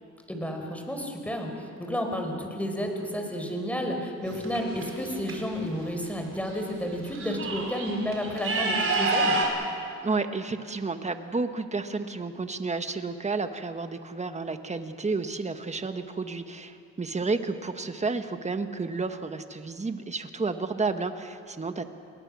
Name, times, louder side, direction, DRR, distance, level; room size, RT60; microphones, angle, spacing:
voice 1, 0.3-9.4, equal, 5° left, 3 dB, 4.7 m, -31 dB
sound 1, 4.2-5.3 6.5-6.6 6.9-9.5, right 3 dB, 45° right, 5.1 m, -28 dB
voice 2, 10.0-21.8, right 4 dB, 20° right, 8 dB, 1.6 m, -31 dB
29.0 x 20.5 x 6.4 m, 2.5 s
cardioid pair, 90°, 30 cm